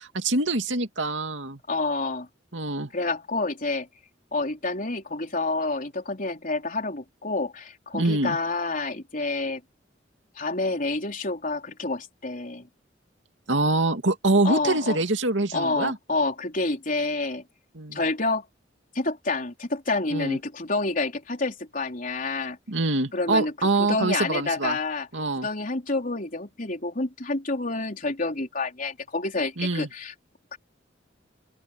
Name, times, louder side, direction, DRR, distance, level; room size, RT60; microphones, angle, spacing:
voice 1, 0.0-1.6 2.5-2.9 7.9-8.4 13.5-16.0 17.7-18.0 20.1-20.4 22.7-24.8 25.1-25.5 29.6-29.9, right 2 dB, 80° right, 2.5 m, -25 dB
voice 2, 1.7-2.3 2.9-3.9 4.3-9.6 10.4-12.7 14.4-15.0 15.5-17.4 17.9-18.5 18.9-22.6 23.1-25.1 25.4-30.1 30.5-30.6, left 3 dB, 45° left, 3.8 m, -28 dB
open air
head